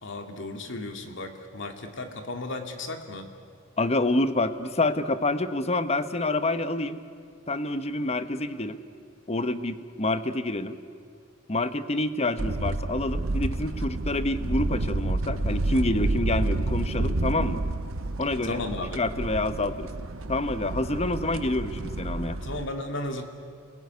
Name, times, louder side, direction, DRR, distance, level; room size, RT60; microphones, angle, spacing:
voice 1, 0.0-3.3 18.4-19.0 22.4-23.2, left 2 dB, 65° left, 5 dB, 2.5 m, -35 dB
voice 2, 3.8-7.0 7.5-8.8 9.3-10.8 11.5-17.6 18.2-18.6 18.9-19.9 20.3-22.4, left 2 dB, 30° left, 12 dB, 1.0 m, -27 dB
sound 1, 12.4-22.7, right 2 dB, 85° right, 0.9 m, -29 dB
28.5 x 20.5 x 9.5 m, 2.2 s
head